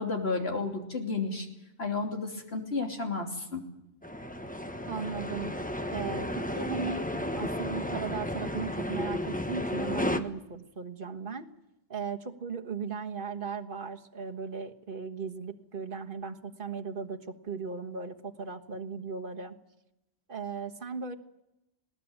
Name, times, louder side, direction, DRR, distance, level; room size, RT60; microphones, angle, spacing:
voice 1, 0.0-1.5 1.8-3.6, left 3 dB, 60° left, 2 dB, 3.3 m, -32 dB
sound 1, 4.0-10.2, left 1 dB, 5° left, 1.0 m, -33 dB
voice 2, 4.9-5.5 5.9-7.1 7.3-11.5 11.9-19.6 20.3-21.2, right 5 dB, 45° right, 6 dB, 1.6 m, -37 dB
20.5 x 18.5 x 9.0 m, 0.92 s
omnidirectional pair, 1.2 m